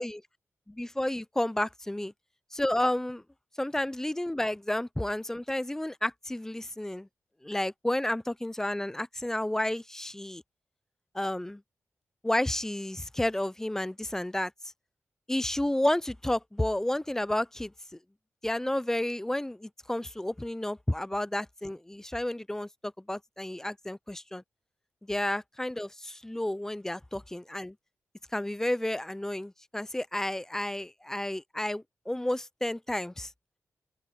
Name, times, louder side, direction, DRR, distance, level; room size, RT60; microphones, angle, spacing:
voice 1, 0.7-2.1 2.5-3.2 3.6-7.1 7.4-10.4 11.1-11.6 12.2-14.5 15.3-18.0 18.4-24.4 25.0-27.8 28.3-33.3, left 1 dB, 10° left, 0.4 m, -31 dB
open air
wide cardioid pair, 115°, 5 cm